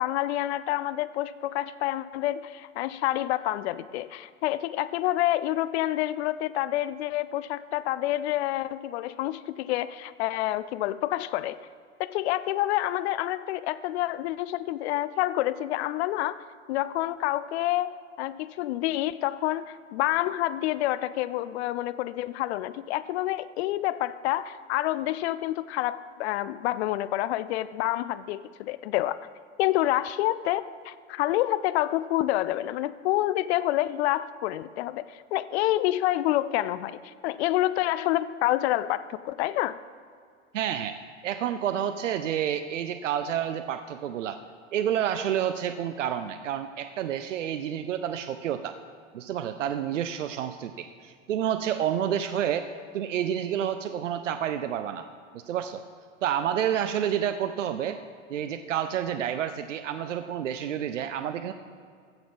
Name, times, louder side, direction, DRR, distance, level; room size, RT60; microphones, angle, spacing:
voice 1, 0.0-11.6 12.0-16.4 16.7-29.2 29.6-39.8, left 15 dB, 60° left, 16 dB, 0.5 m, -28 dB
voice 2, 40.5-41.0 41.2-44.4 44.7-48.7 49.1-52.7 52.9-55.1 55.3-55.8 56.2-58.0 58.3-61.5, right 9 dB, 80° right, 10 dB, 0.6 m, -29 dB
15.0 x 6.1 x 5.3 m, 2.1 s
hypercardioid pair, 95°, 37 cm